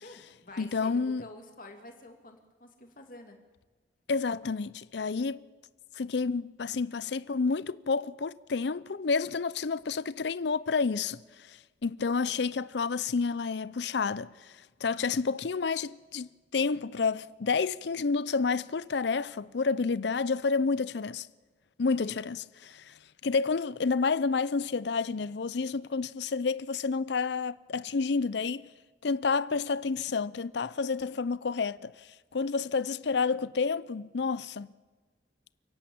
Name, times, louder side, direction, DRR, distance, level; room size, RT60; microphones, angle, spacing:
voice 1, 0.0-3.4 22.0-22.2, left 2 dB, 45° left, 2.6 m, -49 dB
voice 2, 0.6-1.2 4.1-5.4 6.0-11.2 11.5-14.5 14.8-21.3 21.8-22.9 23.2-28.7 29.0-32.1 32.3-34.7, left 4 dB, 65° left, 0.5 m, -30 dB
29.5 x 10.5 x 8.7 m
head